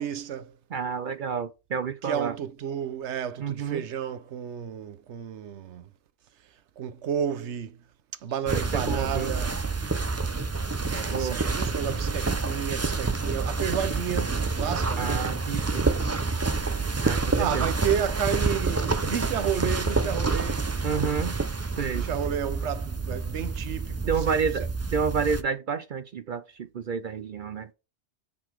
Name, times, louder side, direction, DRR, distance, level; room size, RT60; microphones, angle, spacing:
voice 1, 0.0-0.5 2.1-5.9 6.8-7.8 8.2-9.5 10.9-15.2 17.4-20.7 21.9-24.4, right 8 dB, 80° right, 1.0 m, -31 dB
voice 2, 0.7-2.4 3.4-3.8 8.5-9.3 11.1-11.4 15.0-15.9 17.0-17.7 20.8-21.4 21.8-22.1 24.1-24.6 24.9-27.7, right 6 dB, 55° right, 0.7 m, -29 dB
Mandy Cloth Pass Jacket Walking, 8.5-25.4, right 3 dB, 25° right, 0.3 m, -28 dB
7.3 x 3.9 x 4.6 m
omnidirectional pair, 1.2 m